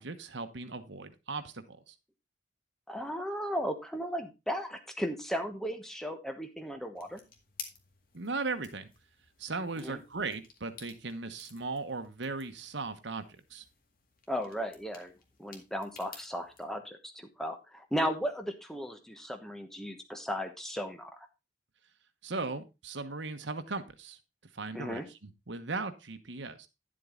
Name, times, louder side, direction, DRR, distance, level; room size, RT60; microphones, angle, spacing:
voice 1, 0.0-1.9 8.1-8.9 9.4-13.2 13.5-13.6 22.2-24.2 24.5-26.7, right 3 dB, 75° right, 9 dB, 1.2 m, -37 dB
voice 2, 2.9-7.2 9.8-10.0 14.3-15.1 15.4-21.3 24.7-25.1, equal, ahead, 6 dB, 1.1 m, -36 dB
sound 1, 7.0-16.6, left 5 dB, 50° left, 2.0 m, -53 dB
10.5 x 7.7 x 3.8 m, 0.26 s
head